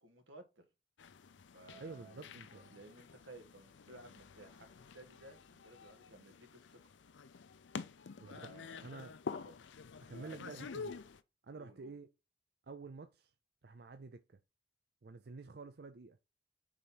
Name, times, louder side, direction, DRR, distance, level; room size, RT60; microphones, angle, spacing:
voice 1, 0.0-0.6 1.5-4.7 4.9-6.8 8.3-8.8 9.4-9.5 10.1-10.7 11.5-11.9, right 1 dB, 90° right, 1.5 m, -56 dB
sound 1, 1.0-11.2, left 5 dB, 75° left, 0.5 m, -49 dB
voice 2, 1.8-2.7 8.2-8.4 8.8-9.1 10.0-10.9 11.4-12.1 12.6-13.3 13.6-14.4 15.0-16.2, right 4 dB, 55° right, 0.5 m, -49 dB
5.0 x 4.0 x 5.8 m
head